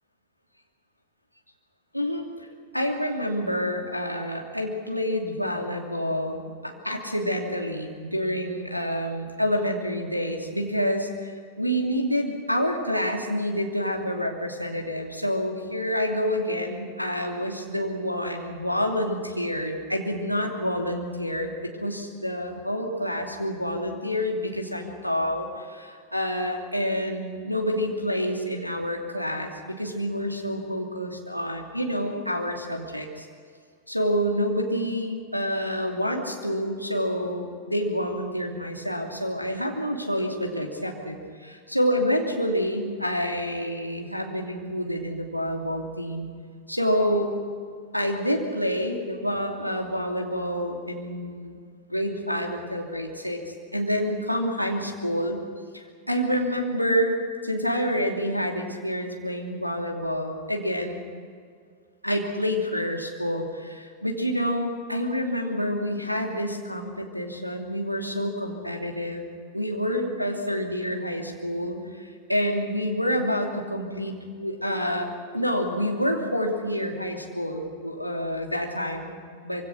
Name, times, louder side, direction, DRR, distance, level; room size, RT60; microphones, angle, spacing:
voice 1, 1.9-2.5 2.7-11.3 11.6-33.3 33.9-46.3 46.7-47.3 47.9-51.6 51.9-53.4 53.7-55.4 55.7-57.1 57.4-61.0 62.0-75.1 75.3-79.6, equal, 90° left, 1 dB, 2.8 m, -28 dB
25.0 x 24.0 x 6.3 m, 2.1 s
figure-of-eight pair, 90°, 0 cm